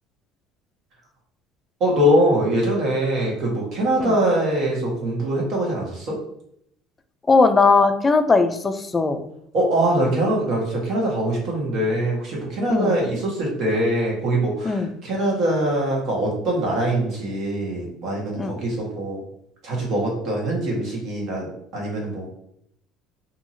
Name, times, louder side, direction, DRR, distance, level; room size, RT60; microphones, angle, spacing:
voice 1, 1.8-6.2 9.5-19.2 19.6-21.5 21.7-22.3, right 1 dB, 55° right, -2 dB, 1.2 m, -23 dB
voice 2, 7.3-9.2 12.7-13.0 14.6-14.9 18.4-18.5, left 4 dB, 20° left, 8 dB, 0.3 m, -19 dB
2.7 x 2.7 x 2.6 m, 0.73 s
supercardioid pair, 105°, 0 cm